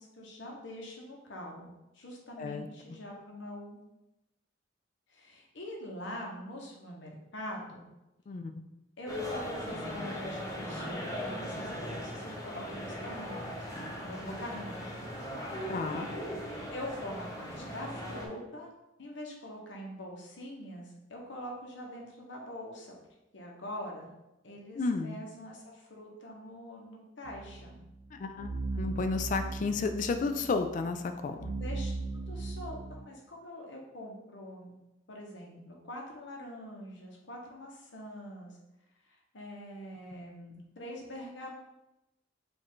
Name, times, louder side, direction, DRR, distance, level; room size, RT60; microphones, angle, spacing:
voice 1, 0.0-3.8 5.1-7.9 9.0-14.8 16.7-18.7 19.0-23.0 23.3-24.1 24.4-27.8 31.5-34.8 35.1-38.6 39.3-41.5, equal, 75° left, -1 dB, 0.9 m, -44 dB
voice 2, 8.3-8.6 15.7-16.1 24.8-25.2 28.1-31.5, left 4 dB, 45° left, 8 dB, 0.3 m, -32 dB
sound 1, 9.1-18.3, equal, 20° left, 0.7 m, -38 dB
sound 2, 27.2-33.0, right 3 dB, 75° right, 0.4 m, -38 dB
4.9 x 2.5 x 3.6 m, 0.94 s
head